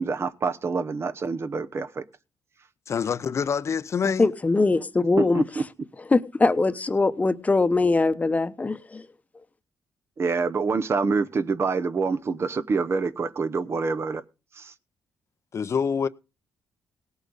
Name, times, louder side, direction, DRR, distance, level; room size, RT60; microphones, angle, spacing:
voice 1, 0.0-2.0 5.2-5.6 10.2-14.2 14.6-14.7, right 4 dB, 40° right, 0.9 m, -26 dB
voice 2, 2.9-4.3 15.5-16.1, left 6 dB, 50° left, 0.6 m, -26 dB
voice 3, 4.2-5.4 6.1-9.0, left 3 dB, 25° left, 0.9 m, -22 dB
17.5 x 8.2 x 4.0 m
cardioid pair, 80°, 6 cm